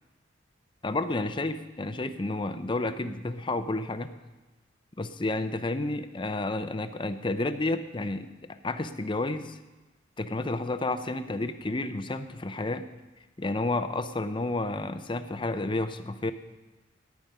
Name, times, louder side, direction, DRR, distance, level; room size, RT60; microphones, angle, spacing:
voice 1, 0.8-4.1 5.0-8.3 8.6-9.6 10.2-12.9 13.4-16.3, left 2 dB, 25° left, 10 dB, 0.6 m, -31 dB
14.5 x 10.5 x 5.4 m, 1.2 s
head